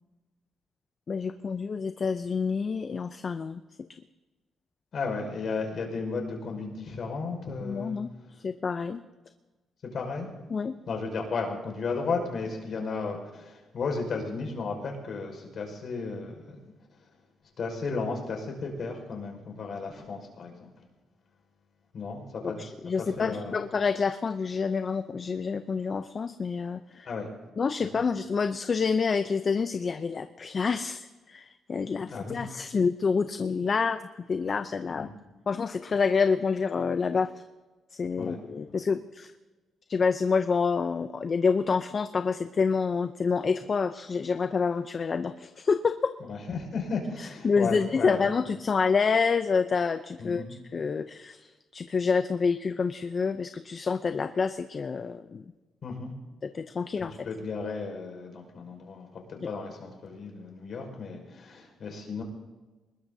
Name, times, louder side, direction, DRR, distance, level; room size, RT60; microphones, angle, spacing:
voice 1, 1.1-3.6 7.6-8.1 8.4-9.0 10.5-10.7 22.6-27.1 27.6-35.1 35.5-37.3 37.9-39.3 39.9-46.1 47.2-50.4 50.7-55.4 56.4-57.2 59.4-59.5, left 5 dB, 40° left, 10 dB, 0.6 m, -28 dB
voice 2, 4.9-8.0 9.8-10.3 10.9-16.6 17.6-20.7 21.9-23.7 26.9-27.3 27.8-27.9 32.1-32.4 35.0-35.1 38.2-38.4 46.3-48.3 50.2-50.5 55.8-56.1 57.0-62.2, left 4 dB, 55° left, 2 dB, 5.2 m, -34 dB
23.5 x 20.5 x 2.8 m, 1.2 s
cardioid pair, 110°, 0 cm